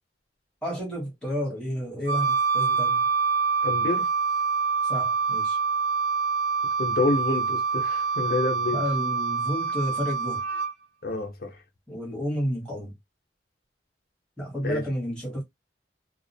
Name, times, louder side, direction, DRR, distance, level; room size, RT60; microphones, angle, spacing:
voice 1, 0.6-3.1 4.8-5.6 8.7-10.4 11.9-12.9 14.4-15.4, equal, 5° left, 1.0 m, -31 dB
Wind instrument woodwind instrument, 2.1-10.7, right 5 dB, 75° right, 0.8 m, -26 dB
voice 2, 3.6-4.0 6.8-8.8 11.0-11.5 14.6-14.8, left 2 dB, 55° left, 0.7 m, -27 dB
2.3 x 2.1 x 2.7 m
head